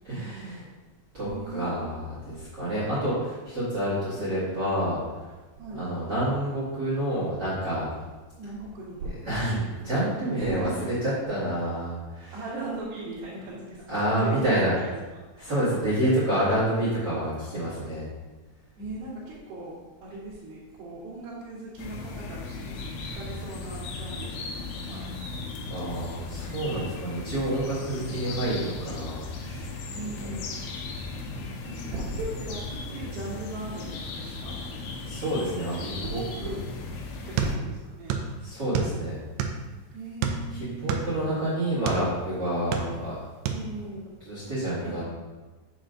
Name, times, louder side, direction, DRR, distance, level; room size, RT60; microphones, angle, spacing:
voice 1, 0.0-0.6 1.1-5.3 5.7-7.9 9.2-12.3 13.9-14.7 15.4-18.0 25.7-29.8 31.0-31.1 35.0-36.5 38.4-39.2 40.5-43.2 44.2-45.0, right 1 dB, 40° right, -10 dB, 1.5 m, -28 dB
voice 2, 1.2-1.9 4.1-4.4 5.6-5.9 8.4-9.2 10.3-10.8 12.3-15.2 18.8-25.1 29.9-30.5 31.3-34.7 35.7-36.6 37.2-38.2 39.9-40.9 43.5-44.1 44.8-45.0, right 2 dB, 65° right, -11 dB, 3.0 m, -38 dB
sound 1, 21.8-37.6, left 3 dB, 85° left, 3.0 m, -37 dB
sound 2, 37.4-38.3 38.6-39.7 40.2-42.1 42.5-43.2 43.5-43.6, right 7 dB, 85° right, 2.3 m, -28 dB
7.3 x 6.6 x 2.6 m, 1.2 s
omnidirectional pair, 5.4 m